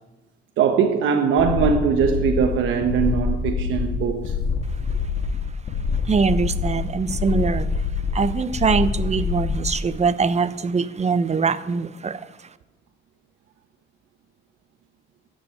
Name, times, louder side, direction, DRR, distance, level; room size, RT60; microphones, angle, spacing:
voice 1, 0.6-4.3, right 6 dB, 80° right, 1.2 m, -21 dB
sound 1, 1.4-9.8, left 5 dB, 60° left, 1.9 m, -25 dB
voice 2, 6.0-7.9 8.1-12.5, right 5 dB, 35° right, 0.9 m, -23 dB
13.5 x 8.1 x 9.5 m
cardioid pair, 90°, 20 cm